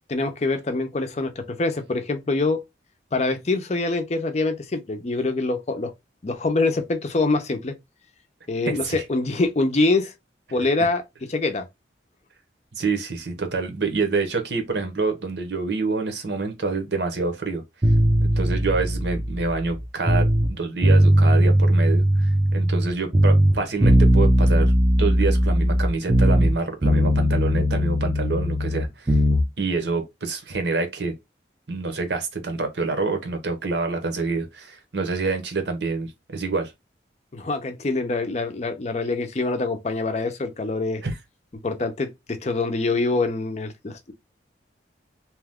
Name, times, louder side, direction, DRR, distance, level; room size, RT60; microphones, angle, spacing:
voice 1, 0.1-2.6 3.1-5.9 6.2-7.7 8.5-10.1 10.5-11.0 11.3-11.6 37.3-41.0 41.6-44.1, left 3 dB, 40° left, 0.5 m, -25 dB
voice 2, 8.7-9.0 12.8-17.6 18.2-24.7 25.0-29.2 29.6-31.1 31.7-36.7 41.0-41.1, right 3 dB, 75° right, 0.9 m, -27 dB
sound 1, 17.8-20.5 20.8-22.9 23.1-26.6 26.8-29.4, equal, 20° right, 0.5 m, -19 dB
2.8 x 2.2 x 3.4 m
head